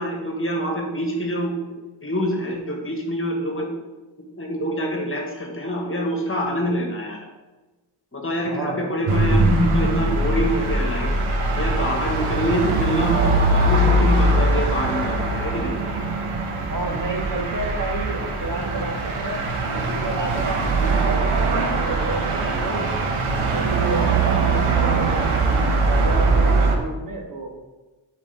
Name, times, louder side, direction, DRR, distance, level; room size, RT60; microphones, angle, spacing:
voice 1, 0.0-1.7 2.0-3.7 4.4-7.2 8.1-11.1 11.6-15.7, equal, 25° left, 1 dB, 1.8 m, -25 dB
voice 2, 8.4-8.8 16.7-22.9 23.3-27.5, right 2 dB, 40° right, 0 dB, 1.8 m, -30 dB
sound 1, 9.1-26.8, right 2 dB, 90° right, 1.2 m, -21 dB
11.0 x 4.9 x 3.7 m, 1.2 s
cardioid pair, 95°, 49 cm